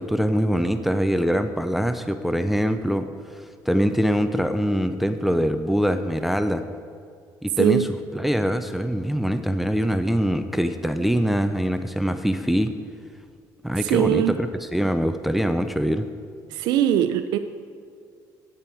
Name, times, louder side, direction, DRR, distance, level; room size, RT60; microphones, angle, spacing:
voice 1, 0.0-3.1 3.4-6.6 7.4-12.8 13.6-16.1, equal, ahead, 9 dB, 0.4 m, -23 dB
voice 2, 13.8-14.4 16.5-17.4, right 11 dB, 90° right, 9 dB, 0.4 m, -21 dB
10.5 x 9.2 x 4.5 m, 2.2 s
cardioid pair, 135°, 7 cm